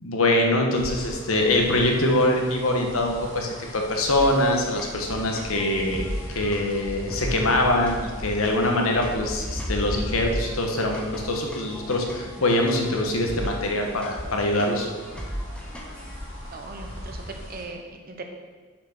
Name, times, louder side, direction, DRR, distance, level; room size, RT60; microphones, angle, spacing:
voice 1, 0.0-6.1 6.3-14.9, left 1 dB, 85° left, 2 dB, 1.3 m, -23 dB
sound 1, 0.7-17.6, left 1 dB, 55° left, 2.6 m, -38 dB
sound 2, 4.1-16.3, equal, 5° left, 1.0 m, -38 dB
voice 2, 16.5-18.2, right 3 dB, 45° right, 4 dB, 0.9 m, -40 dB
6.5 x 6.2 x 6.0 m, 1.4 s
head